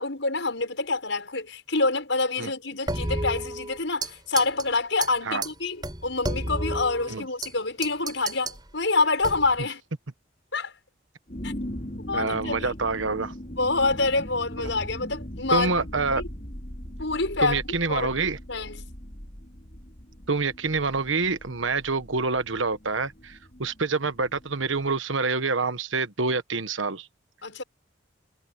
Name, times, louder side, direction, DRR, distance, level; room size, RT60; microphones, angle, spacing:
voice 1, 0.0-9.8 10.5-10.7 11.4-11.5 12.1-12.7 13.6-15.7 16.2-16.3 17.0-17.6 17.9-18.2 18.5-18.9 27.4-27.6, left 3 dB, 70° left, 6.5 m, -26 dB
sound 1, 2.9-4.1 4.4-4.6 5.0-5.1 5.4-5.5 5.8-7.5 7.8-8.6 9.2-9.6, right 2 dB, 20° right, 4.4 m, -31 dB
sound 2, 11.3-24.9, equal, 40° left, 4.3 m, -40 dB
voice 2, 12.1-13.3 15.5-16.2 17.4-18.4 20.3-27.1, right 4 dB, 80° right, 1.3 m, -27 dB
head